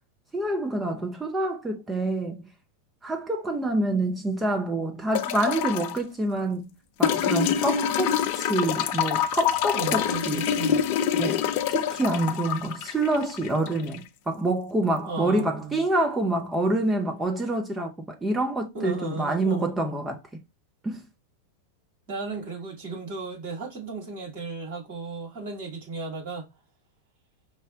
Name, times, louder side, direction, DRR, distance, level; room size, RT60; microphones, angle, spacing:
voice 1, 0.3-2.4 3.0-6.7 7.0-10.4 11.1-20.2 20.8-21.0, right 2 dB, 10° right, 0.7 m, -27 dB
sound 1, 5.1-6.0 7.0-14.0 15.4-15.5, left 9 dB, 45° left, 0.4 m, -26 dB
voice 2, 9.7-10.8 15.1-15.8 18.7-19.7 22.1-26.5, right 4 dB, 50° right, 2.5 m, -35 dB
5.3 x 2.2 x 3.5 m
figure-of-eight pair, 90°, 0 cm